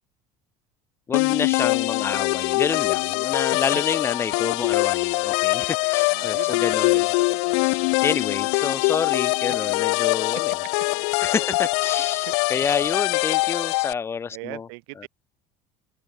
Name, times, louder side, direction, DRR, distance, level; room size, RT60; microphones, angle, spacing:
sound 1, 1.1-13.9, left 38 dB, 85° left, 0.8 m, -23 dB
voice 1, 1.1-7.1 7.6-10.5 11.2-14.7 15.0-15.1, left 6 dB, 20° left, 0.5 m, -28 dB
voice 2, 3.5-3.8 6.0-7.9 9.5-9.7 11.2-11.6 12.2-12.3 14.3-15.1, right 36 dB, 85° right, 1.2 m, -40 dB
cardioid pair, 155°, 13 cm